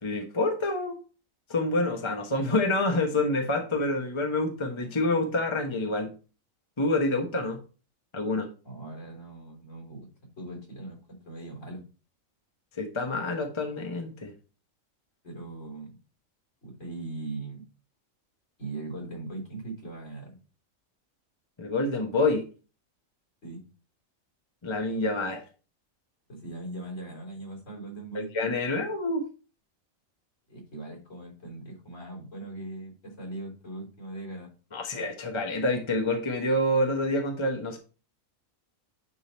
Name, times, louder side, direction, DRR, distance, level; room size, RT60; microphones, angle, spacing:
voice 1, 0.0-1.0 1.5-6.1 6.8-7.6 8.1-8.5 12.8-14.3 21.6-22.4 24.6-25.4 28.1-29.3 34.7-37.8, left 2 dB, 25° left, 1.0 m, -27 dB
voice 2, 8.6-10.1 10.4-11.9 15.2-16.0 16.6-17.7 18.6-20.4 23.4-23.6 26.3-28.3 30.5-34.5, right 2 dB, 70° left, 4.2 m, -40 dB
9.7 x 3.8 x 4.3 m
omnidirectional pair, 1.4 m